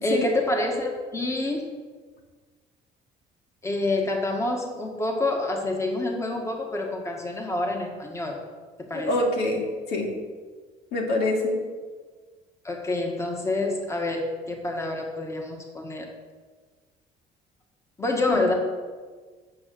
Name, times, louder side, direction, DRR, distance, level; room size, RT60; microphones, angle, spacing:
voice 1, 0.0-1.7 3.6-8.4 8.8-9.3 12.6-16.1 18.0-18.5, left 2 dB, 15° left, 1 dB, 1.8 m, -27 dB
voice 2, 8.9-9.6 9.9-10.1 10.9-11.6 18.3-18.4, left 2 dB, 80° left, 0 dB, 2.6 m, -25 dB
9.6 x 6.7 x 7.9 m, 1.5 s
cardioid pair, 110°, 17 cm